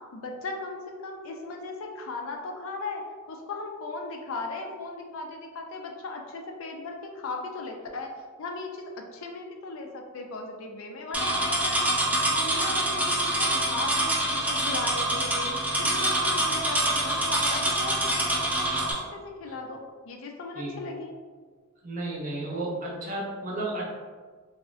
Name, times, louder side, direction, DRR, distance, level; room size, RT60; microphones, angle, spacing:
voice 1, 0.1-3.0 3.3-8.1 8.4-12.0 12.3-15.5 15.8-21.2, left 3 dB, 70° left, 2 dB, 0.4 m, -37 dB
sound 1, 11.1-18.9, right 1 dB, 10° right, 0.3 m, -26 dB
voice 2, 21.8-23.9, right 2 dB, 40° right, -4 dB, 0.6 m, -33 dB
3.5 x 2.1 x 2.4 m, 1.5 s
head